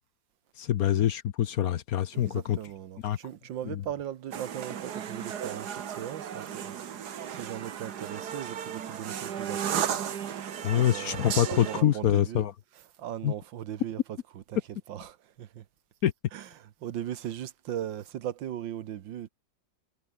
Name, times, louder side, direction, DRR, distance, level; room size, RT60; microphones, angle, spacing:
voice 1, 0.6-2.6 3.0-3.2 10.6-12.5 13.2-13.3 16.0-16.1, left 11 dB, 60° left, 1.1 m, -25 dB
voice 2, 2.1-6.7 7.3-10.3 10.6-12.5 12.7-15.7 16.3-19.3, right 10 dB, 80° right, 1.8 m, -39 dB
sound 1, 4.3-11.8, right 9 dB, 60° right, 1.7 m, -35 dB
omnidirectional pair, 2.0 m